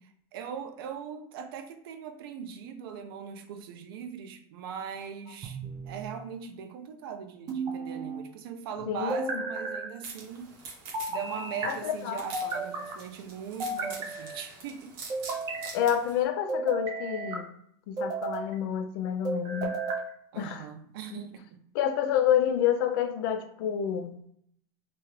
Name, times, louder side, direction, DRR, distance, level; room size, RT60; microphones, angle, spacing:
voice 1, 0.0-10.5 11.1-15.0 20.3-21.6, right 7 dB, 90° right, 7 dB, 0.5 m, -40 dB
sound 1, 5.4-6.1 7.5-8.2 9.1-9.9 10.9-11.7 12.3-13.0 13.6-14.4 15.1-15.7 16.5-17.4 18.0-18.5 19.2-20.1, right 3 dB, 30° right, 0.6 m, -33 dB
voice 2, 8.9-9.4 11.6-12.2 15.7-17.5 17.9-19.7 20.4-20.7 21.1-21.3 21.7-24.1, left 9 dB, 70° left, 8 dB, 0.4 m, -28 dB
sound 2, 10.0-16.2, right 4 dB, 70° right, 1.0 m, -46 dB
2.8 x 2.3 x 3.1 m, 0.68 s
supercardioid pair, 150°, 12 cm